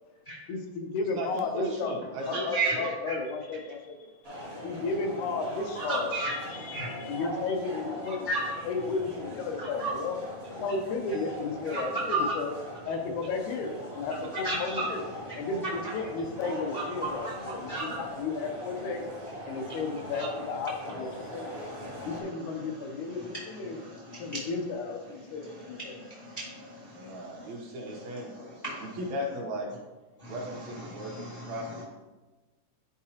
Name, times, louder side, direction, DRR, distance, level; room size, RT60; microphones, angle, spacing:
voice 1, 0.5-1.9 2.3-4.1 4.6-8.3 8.6-10.2 10.6-12.5 12.9-15.0 15.4-19.0 19.5-21.6 22.0-23.8 24.2-26.0, left 4 dB, 80° left, 4 dB, 2.1 m, -33 dB
voice 2, 1.1-2.9 26.9-28.3 28.8-29.7 30.3-31.8, equal, 70° right, 0 dB, 2.0 m, -37 dB
voice 3, 2.3-2.8 3.1-3.2 5.7-6.3 6.7-6.9 8.0-8.4 9.6-9.9 11.7-11.8 14.4-14.7 16.7-16.8 17.2-17.3 17.7-18.0 20.2-20.3 21.7-22.1 23.2-23.3 23.7-24.4 25.6-27.5 28.6-28.8 30.2-30.3 30.9-31.5, right 3 dB, 35° left, -6 dB, 0.9 m, -35 dB
sound 1, 4.2-22.2, equal, 40° right, 0.8 m, -41 dB
9.7 x 4.7 x 2.8 m, 1.2 s
omnidirectional pair, 3.6 m